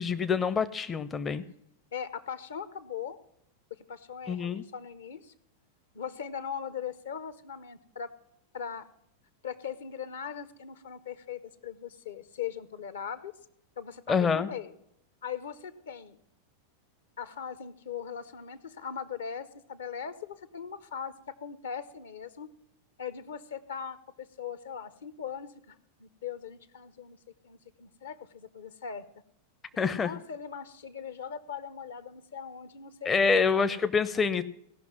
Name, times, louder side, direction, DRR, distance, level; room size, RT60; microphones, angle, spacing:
voice 1, 0.0-1.4 4.3-4.6 14.1-14.5 29.8-30.1 33.1-34.4, left 5 dB, 20° left, 13 dB, 0.5 m, -26 dB
voice 2, 1.9-3.2 3.7-5.3 5.9-8.1 8.5-8.9 9.4-13.3 13.8-14.7 15.2-16.2 17.2-22.5 23.0-25.7 26.0-27.2 27.4-29.0 29.9-33.4, left 7 dB, 65° left, 14 dB, 0.8 m, -40 dB
17.0 x 5.9 x 7.1 m, 0.74 s
figure-of-eight pair, 90°, 0 cm